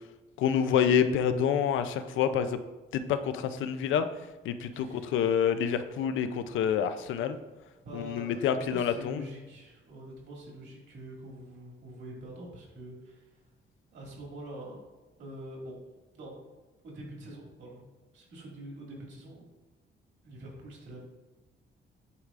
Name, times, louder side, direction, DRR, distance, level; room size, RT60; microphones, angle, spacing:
voice 1, 0.4-2.6 2.9-4.0 4.4-7.4 7.9-9.2, left 8 dB, 85° left, 10 dB, 0.5 m, -27 dB
voice 2, 4.7-5.4 7.8-13.5 13.9-14.8 15.2-15.8 16.1-16.4 16.8-17.9 18.1-19.4 20.2-21.0, right 1 dB, 70° right, -2 dB, 2.1 m, -45 dB
9.5 x 4.7 x 2.5 m, 1.2 s
cardioid pair, 180°, 20 cm